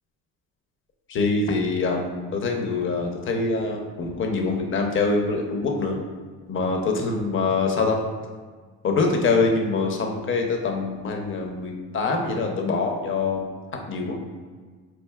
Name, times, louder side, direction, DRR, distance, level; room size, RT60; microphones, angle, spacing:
voice 1, 1.1-6.0 6.5-8.0 8.8-13.5 13.9-14.2, left 3 dB, 40° left, 2 dB, 0.6 m, -24 dB
4.4 x 2.6 x 2.3 m, 1.5 s
cardioid pair, 90°, 32 cm